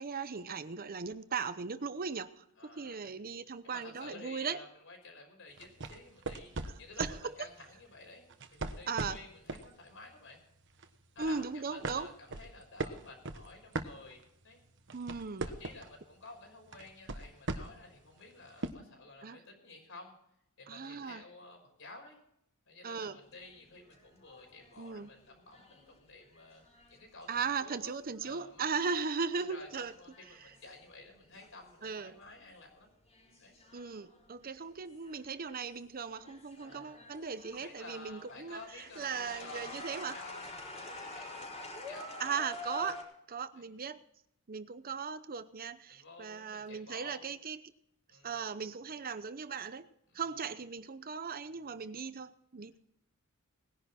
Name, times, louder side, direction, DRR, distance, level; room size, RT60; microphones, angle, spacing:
voice 1, 0.0-2.4 2.7-4.6 7.0-7.5 8.9-9.2 11.2-12.1 14.9-15.5 19.2-19.4 20.7-21.2 22.8-23.2 24.8-25.1 27.3-29.9 30.4-30.5 31.8-32.2 33.7-38.6 39.0-40.2 42.2-43.0 43.3-44.0 44.5-47.6 48.2-49.9 50.1-52.8, right 5 dB, 45° right, 13 dB, 0.8 m, -38 dB
voice 2, 2.6-3.1 3.6-10.4 11.1-14.6 15.4-20.1 20.6-22.2 22.7-26.6 26.9-27.9 28.2-29.0 29.3-32.9 33.4-33.5 36.6-37.1 37.5-42.2 42.7-42.9 43.6-43.7 45.9-47.3 48.1-48.4 50.1-50.2, left 3 dB, 65° left, 2 dB, 5.7 m, -52 dB
sound 1, 5.6-7.3 8.3-9.7 10.1-10.4 10.8-11.4 11.8-14.4 14.8-16.0 16.7-17.9 18.6-18.7, right 3 dB, 60° right, 1.2 m, -39 dB
sound 2, 23.3-28.5 28.9-31.8 32.1-32.5 33.1-35.7 36.1-43.0, left 2 dB, 35° left, 4.5 m, -48 dB
19.5 x 10.5 x 4.3 m, 0.77 s
head